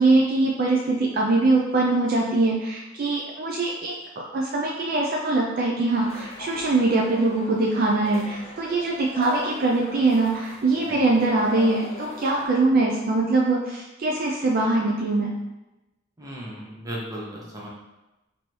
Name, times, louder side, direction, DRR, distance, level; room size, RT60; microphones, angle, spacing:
voice 1, 0.0-15.3, right 2 dB, 45° right, -2 dB, 0.4 m, -22 dB
sound 1, 5.9-12.5, left 2 dB, 30° left, 0.4 m, -40 dB
voice 2, 16.2-17.7, equal, 15° right, -4 dB, 0.8 m, -35 dB
3.1 x 2.6 x 4.4 m, 1.0 s
head